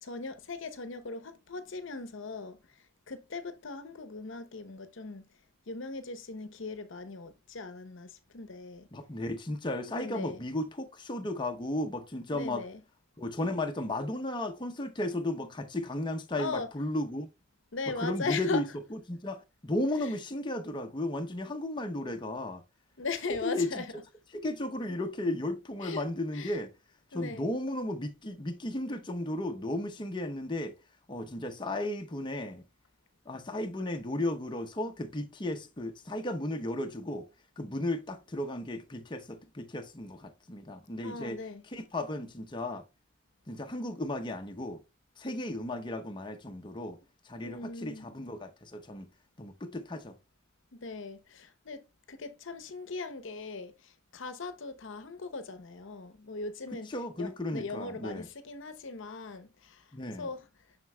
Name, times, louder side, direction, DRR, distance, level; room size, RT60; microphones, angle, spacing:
voice 1, 0.0-2.8 3.1-5.3 5.7-8.9 9.9-10.5 12.3-12.8 16.3-16.7 17.7-18.6 20.0-20.1 23.0-23.9 25.8-26.1 26.3-26.6 27.1-27.5 41.0-41.6 47.4-48.1 50.7-59.9 60.2-60.5, left 3 dB, 65° left, 0.8 m, -39 dB
voice 2, 8.9-12.6 13.2-17.3 18.0-18.6 18.9-22.6 23.3-23.7 24.3-26.7 27.1-30.7 31.1-32.6 33.3-37.3 37.6-41.4 41.7-42.8 43.5-44.8 45.2-47.0 47.3-49.1 49.4-50.1 56.9-58.3 59.9-60.3, left 1 dB, 25° left, 0.7 m, -34 dB
7.6 x 5.7 x 2.2 m
head